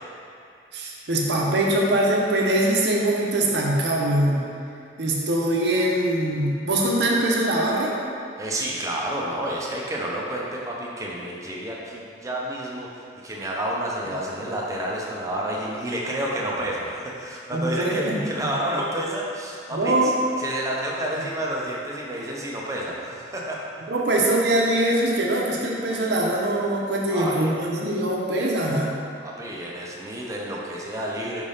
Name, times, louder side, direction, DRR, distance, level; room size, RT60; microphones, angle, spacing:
voice 1, 0.7-4.5 5.0-7.9 17.5-18.5 19.7-20.2 23.9-28.9, right 1 dB, 70° right, -2 dB, 0.8 m, -23 dB
voice 2, 8.4-23.6 27.1-27.5 29.2-31.5, right 1 dB, 15° right, -4 dB, 0.7 m, -30 dB
5.2 x 3.4 x 5.5 m, 2.4 s
head